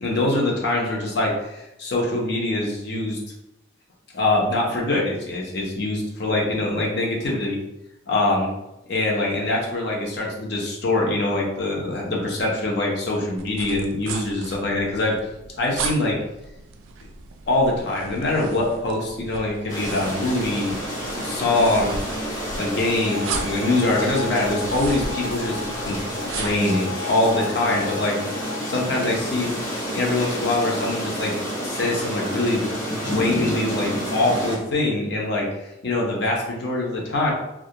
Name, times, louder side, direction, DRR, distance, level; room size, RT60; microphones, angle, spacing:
voice 1, 0.0-3.2 4.1-7.6 8.1-8.5 8.9-15.2 15.6-16.2 17.5-20.7 21.1-22.0 22.5-28.2 28.7-29.6 29.9-31.3 31.6-37.3, left 2 dB, 55° left, -2 dB, 0.6 m, -24 dB
sound 1, 13.4-26.7, right 4 dB, 90° right, 0.3 m, -36 dB
sound 2, 19.7-34.6, equal, 85° left, 1.0 m, -29 dB
sound 3, 23.0-29.1, left 7 dB, 5° right, 0.6 m, -37 dB
2.3 x 2.1 x 2.7 m, 0.91 s
head